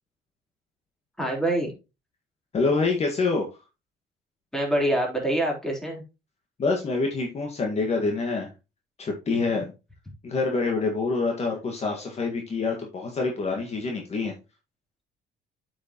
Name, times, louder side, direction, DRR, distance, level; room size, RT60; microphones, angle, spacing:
voice 1, 1.2-1.7 4.5-6.0, right 1 dB, 5° left, -1 dB, 3.6 m, -25 dB
voice 2, 2.5-3.5 6.6-8.5 9.0-9.7 10.2-14.3, left 3 dB, 40° left, 2 dB, 1.7 m, -26 dB
8.1 x 6.4 x 3.0 m, 0.27 s
cardioid pair, 110°, 17 cm